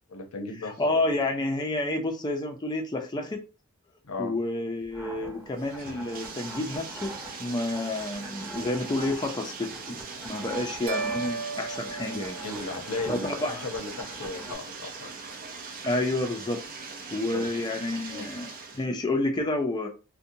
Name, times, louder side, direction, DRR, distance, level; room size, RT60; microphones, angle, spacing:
voice 1, 0.1-1.0 4.0-4.4 10.4-10.8 12.4-15.1 17.3-17.5 18.1-18.3, left 3 dB, 80° left, 0.6 m, -36 dB
voice 2, 0.6-3.4 4.2-7.1 7.4-10.0 10.2-12.4 13.1-13.7 15.8-16.6 17.1-19.9, left 2 dB, 20° left, 0.4 m, -29 dB
Bathtub (filling or washing), 4.8-18.9, right 4 dB, 40° right, 0.4 m, -41 dB
sound 1, 4.9-14.5, right 1 dB, 10° right, 0.9 m, -44 dB
sound 2, 10.9-13.2, right 4 dB, 70° right, 0.8 m, -35 dB
2.7 x 2.2 x 2.6 m
head